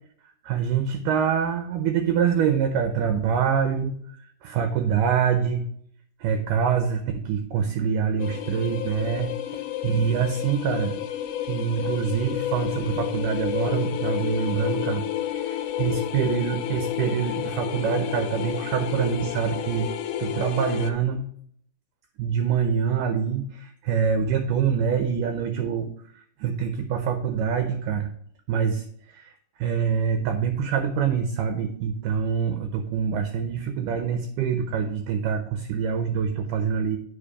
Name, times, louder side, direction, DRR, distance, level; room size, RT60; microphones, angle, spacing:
voice 1, 0.4-5.7 6.2-11.0 11.5-15.0 15.3-19.9 20.2-21.3 22.2-28.1 28.5-37.0, right 7 dB, 80° right, 7 dB, 1.9 m, -25 dB
sound 1, 8.2-20.9, left 12 dB, 80° left, 1.8 m, -30 dB
8.8 x 4.5 x 4.9 m, 0.64 s
omnidirectional pair, 4.4 m